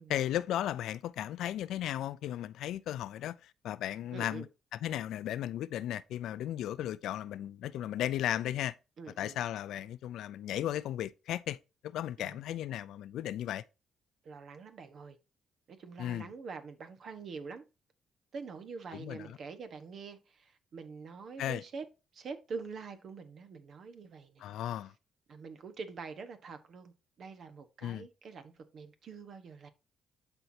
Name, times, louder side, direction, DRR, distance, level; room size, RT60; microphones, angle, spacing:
voice 1, 0.1-4.5 4.7-8.8 9.2-11.6 11.8-13.6 16.0-16.3 18.9-19.4 21.4-21.6 24.4-24.9 27.8-28.1, left 12 dB, 80° left, 0.4 m, -35 dB
voice 2, 4.1-4.5 9.0-9.4 12.2-12.4 14.2-15.2 15.7-17.6 18.3-21.8 22.1-24.5 25.3-29.7, right 5 dB, 60° right, 1.2 m, -45 dB
11.5 x 4.5 x 2.8 m
cardioid pair, 90°, 0 cm